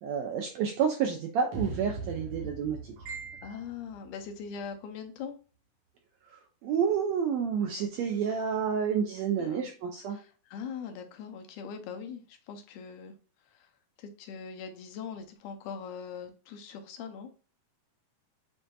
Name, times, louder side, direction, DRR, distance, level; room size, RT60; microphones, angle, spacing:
voice 1, 0.0-3.5 6.3-10.2, right 7 dB, 85° right, 3 dB, 1.6 m, -30 dB
sound 1, 1.5-4.7, right 4 dB, 65° right, 1.5 m, -41 dB
voice 2, 3.4-5.4 9.3-9.7 10.1-13.1 13.5-13.7 14.0-17.3, left 6 dB, 80° left, 6 dB, 2.1 m, -41 dB
7.5 x 2.6 x 2.3 m, 0.38 s
omnidirectional pair, 3.8 m